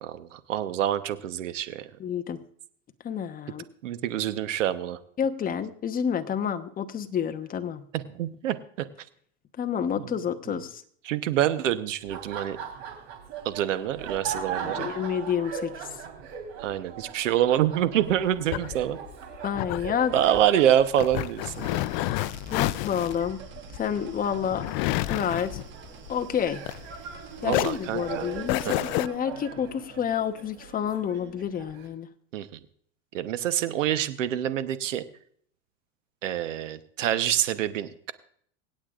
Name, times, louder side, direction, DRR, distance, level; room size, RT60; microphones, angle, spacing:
voice 1, 0.0-1.9 3.8-5.0 7.9-8.6 10.0-10.2 10.5-10.6 11.0-12.6 13.4-14.9 16.6-19.0 20.1-21.8 27.4-28.3 28.6-28.8 32.3-32.5 33.1-35.0 36.2-38.1, right 11 dB, 90° right, 12 dB, 1.1 m, -26 dB
voice 2, 2.0-2.4 3.0-3.6 5.2-7.8 9.6-10.8 14.6-15.9 19.4-20.1 22.5-23.4 23.7-24.6 25.1-25.6 26.1-26.6 27.4-28.7 28.9-32.1, left 8 dB, 25° left, 7 dB, 1.0 m, -29 dB
Laughter, 12.0-31.9, right 7 dB, 60° right, 3.5 m, -40 dB
sound 1, 18.0-27.2 27.5-29.1, left 19 dB, 50° left, 0.5 m, -30 dB
sound 2, 21.4-29.1, right 6 dB, 30° right, 1.2 m, -48 dB
25.5 x 8.7 x 2.5 m, 0.63 s
supercardioid pair, 130°, 36 cm